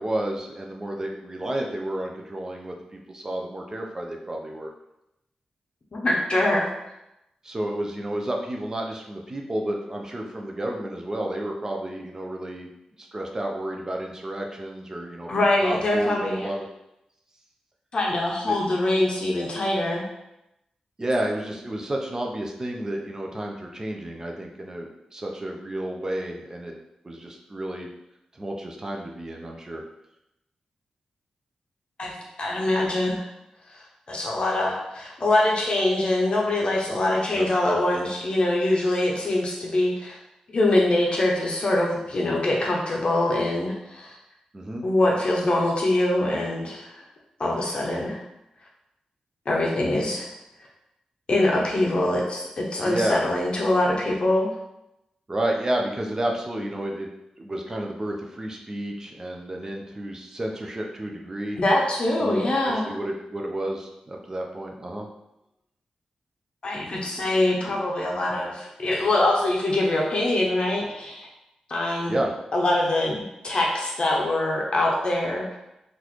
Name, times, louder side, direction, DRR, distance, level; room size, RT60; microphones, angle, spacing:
voice 1, 0.0-4.7 7.4-12.7 13.0-16.7 18.4-18.7 21.0-26.7 27.0-27.9 28.3-29.8 37.3-37.5 44.5-44.8 52.8-53.2 55.3-57.1 57.4-61.6 62.2-65.1 66.9-67.1 72.1-72.3, right 1 dB, 25° right, 1 dB, 0.5 m, -31 dB
voice 2, 5.9-6.7 15.3-16.5 17.9-20.1 32.0-32.1 32.4-33.2 33.7-40.2 40.5-44.2 44.8-46.9 47.4-48.2 49.5-50.3 51.3-54.5 61.6-63.0 66.6-71.3 71.7-72.2 72.5-75.6, left 1 dB, 50° left, -2 dB, 0.6 m, -24 dB
3.8 x 2.5 x 3.0 m, 0.88 s
wide cardioid pair, 95°, 2 cm